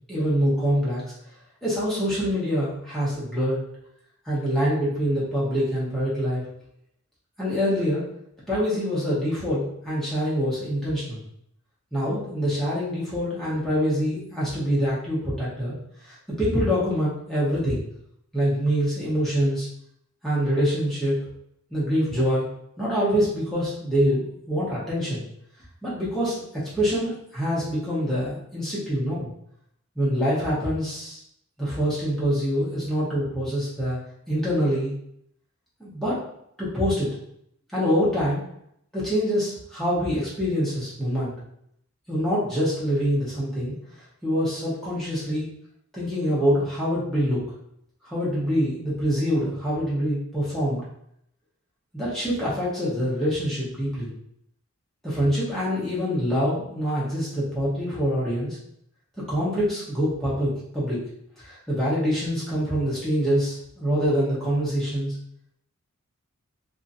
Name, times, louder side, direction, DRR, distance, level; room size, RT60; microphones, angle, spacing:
voice 1, 0.1-1.0 1.6-3.6 4.2-6.4 7.4-8.0 8.5-11.2 11.9-15.7 16.1-17.8 18.3-19.7 20.2-21.1 21.7-22.5 22.8-25.2 25.8-29.3 30.0-31.2 31.6-34.0 34.3-34.9 35.8-36.2 36.6-37.1 37.7-38.4 38.9-41.3 42.1-43.7 44.2-45.5 45.9-47.4 48.0-50.8 51.9-54.1 55.0-58.6 59.3-61.0 61.4-65.1, equal, ahead, -9 dB, 0.9 m, -25 dB
2.7 x 2.5 x 2.6 m, 0.73 s
head